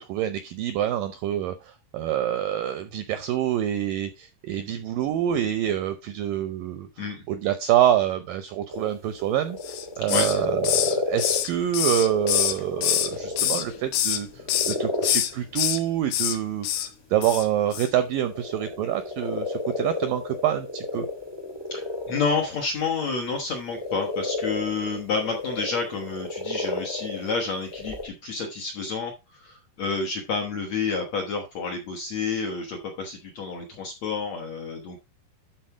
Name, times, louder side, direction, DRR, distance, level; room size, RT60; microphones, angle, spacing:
voice 1, 0.0-6.9 7.3-21.1, right 11 dB, 80° right, 10 dB, 2.0 m, -26 dB
sound 1, 8.7-11.5 11.8-13.8 14.3-15.3 17.8-22.5 23.4-23.5 23.7-27.3 27.6-28.0, left 3 dB, 20° right, 0.6 m, -31 dB
Hiss, 9.6-10.4 10.6-13.1 13.4-14.2 14.5-14.8 15.0-15.8 16.1-16.4 16.6-16.9 17.2-17.5 17.7-17.9, left 12 dB, 80° left, 2.9 m, -25 dB
voice 2, 21.7-35.0, left 4 dB, 60° left, 3 dB, 1.8 m, -29 dB
12.0 x 4.3 x 4.7 m, 0.25 s
omnidirectional pair, 4.8 m